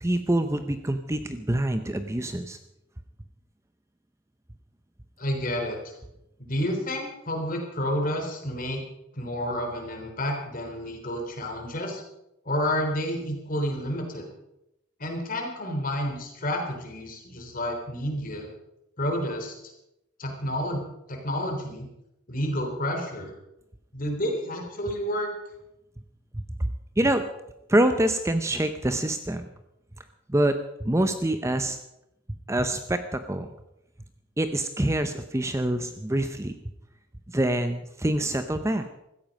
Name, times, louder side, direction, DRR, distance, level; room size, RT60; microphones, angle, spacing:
voice 1, 0.0-2.6 26.3-27.2 27.7-29.5 30.3-31.8 32.3-33.5 34.4-36.5 37.3-38.9, right 1 dB, 15° right, 9 dB, 0.7 m, -26 dB
voice 2, 5.2-5.9 6.4-8.9 9.1-12.0 12.5-14.3 15.0-18.5 19.0-19.5 20.2-20.8 21.1-21.9 22.3-23.3 23.9-25.3, equal, 45° left, 3 dB, 3.6 m, -30 dB
16.5 x 14.0 x 5.3 m, 0.86 s
head